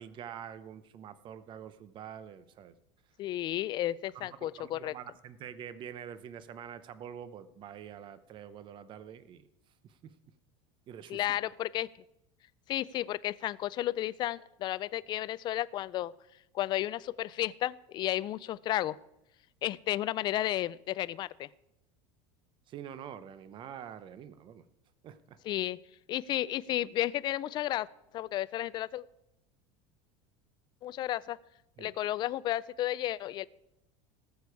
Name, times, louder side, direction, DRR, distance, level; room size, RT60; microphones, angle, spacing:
voice 1, 0.0-2.7 4.1-9.5 9.8-10.1 10.9-11.4 22.7-24.6 25.0-25.4 31.8-31.9, right 9 dB, 30° right, 14 dB, 0.8 m, -46 dB
voice 2, 3.2-4.9 11.1-11.9 12.7-16.1 16.5-19.0 19.6-21.5 25.5-25.8 26.1-27.9 28.1-29.0 30.8-31.4 31.8-33.5, left 14 dB, 30° left, 18 dB, 0.3 m, -32 dB
18.5 x 6.9 x 4.7 m, 0.84 s
supercardioid pair, 150°, 15 cm